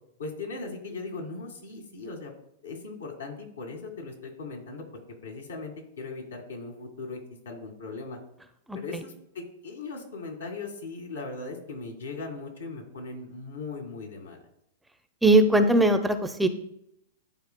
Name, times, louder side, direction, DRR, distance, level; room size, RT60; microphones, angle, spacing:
voice 1, 0.2-2.3 2.6-4.9 5.2-7.2 7.5-8.2 8.7-14.4, left 3 dB, 90° left, 1 dB, 1.8 m, -38 dB
voice 2, 15.2-16.5, right 1 dB, 5° right, 8 dB, 0.5 m, -20 dB
11.0 x 4.5 x 2.2 m, 0.76 s
hypercardioid pair, 115°, 0 cm